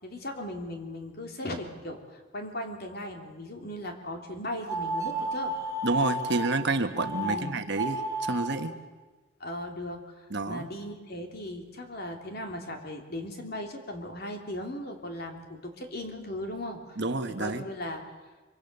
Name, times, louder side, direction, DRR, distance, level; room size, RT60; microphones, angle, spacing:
voice 1, 0.0-5.5 7.2-7.6 9.4-16.8 17.4-18.1, left 1 dB, 45° left, 3 dB, 3.1 m, -37 dB
sound 1, 4.7-6.5 6.9-7.3 7.7-8.5, right 1 dB, 15° right, 2.5 m, -31 dB
voice 2, 5.8-8.7 10.3-10.7 17.0-17.6, right 3 dB, 55° right, 7 dB, 1.5 m, -29 dB
25.0 x 24.5 x 6.8 m, 1.3 s
head